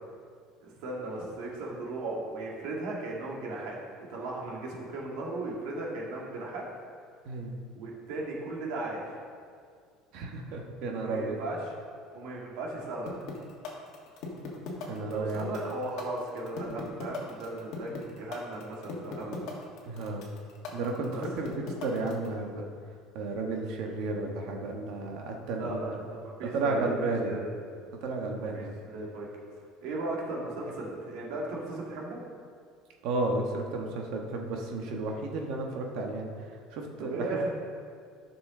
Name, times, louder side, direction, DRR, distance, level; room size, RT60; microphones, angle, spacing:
voice 1, 0.6-3.8 4.1-6.6 7.7-9.0 10.9-11.7 12.1-13.3 15.1-19.5 21.1-21.2 25.4-27.5 28.5-29.3 29.8-32.2 37.0-37.5, right 2 dB, 70° right, -3 dB, 2.2 m, -36 dB
voice 2, 10.1-11.4 14.9-15.5 19.9-20.4 20.7-21.1 21.4-22.6 23.1-25.8 26.5-27.4 28.0-28.8 33.0-36.3 36.7-37.2, right 3 dB, 55° right, 1 dB, 1.3 m, -32 dB
sound 1, 13.1-22.3, left 5 dB, 50° left, 1.7 m, -39 dB
13.5 x 6.1 x 3.8 m, 2.1 s
cardioid pair, 170°, 0 cm